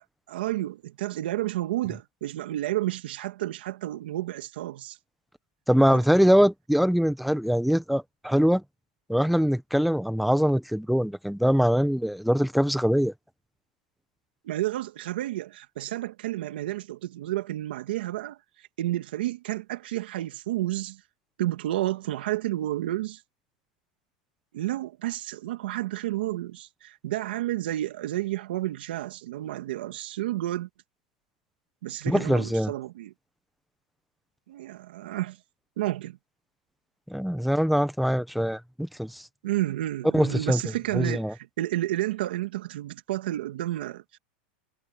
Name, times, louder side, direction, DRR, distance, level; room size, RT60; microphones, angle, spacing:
voice 1, 0.0-5.0 5.9-6.0 14.4-21.0 21.4-23.2 24.5-30.7 31.8-33.1 34.5-35.4 35.8-36.2 39.4-44.2, right 15 dB, 80° right, 2.0 m, -31 dB
voice 2, 5.7-8.6 9.1-13.1 32.1-32.7 37.1-39.2 40.1-40.6 40.9-41.3, equal, ahead, 0.9 m, -23 dB
supercardioid pair, 160°, 5 cm